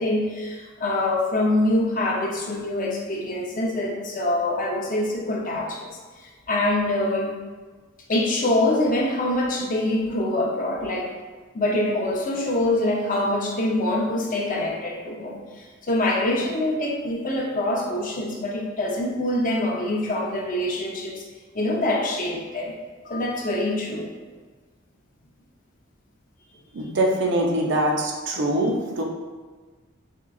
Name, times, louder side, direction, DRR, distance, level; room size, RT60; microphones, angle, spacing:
voice 1, 0.0-5.9 6.5-7.3 8.1-11.1 11.5-15.4 15.8-21.2 21.5-22.7 23.0-24.1, left 1 dB, 40° left, -1 dB, 0.5 m, -24 dB
voice 2, 26.7-29.0, right 1 dB, 60° right, 0 dB, 0.5 m, -23 dB
4.3 x 2.4 x 2.2 m, 1.4 s
head